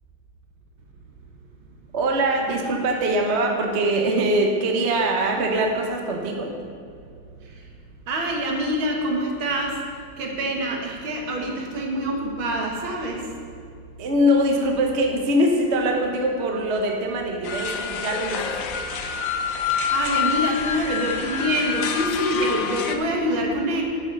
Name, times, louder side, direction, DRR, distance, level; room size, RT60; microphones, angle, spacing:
voice 1, 1.9-6.6 14.0-18.5 18.7-18.8, right 1 dB, 40° right, 2 dB, 1.1 m, -22 dB
voice 2, 8.1-9.7 10.2-13.2 19.7-23.8, equal, 70° right, 0 dB, 2.2 m, -25 dB
sound 1, 17.4-23.0, left 7 dB, 75° left, 0.7 m, -27 dB
11.0 x 8.0 x 5.4 m, 2.3 s
omnidirectional pair, 2.3 m